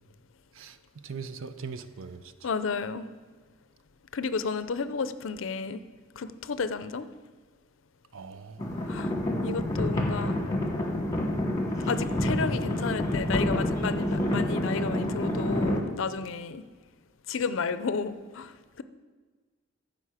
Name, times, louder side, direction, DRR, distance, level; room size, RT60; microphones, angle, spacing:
voice 1, 1.0-2.2 8.1-8.9, right 5 dB, 80° right, 0.5 m, -40 dB
voice 2, 2.4-3.1 4.1-5.8 6.2-7.1 8.9-9.1 9.4-10.4 11.9-16.6 17.3-18.8, left 5 dB, 75° left, 0.5 m, -32 dB
sound 1, 8.6-15.8, left 1 dB, 15° left, 1.3 m, -28 dB
14.0 x 5.1 x 4.9 m
head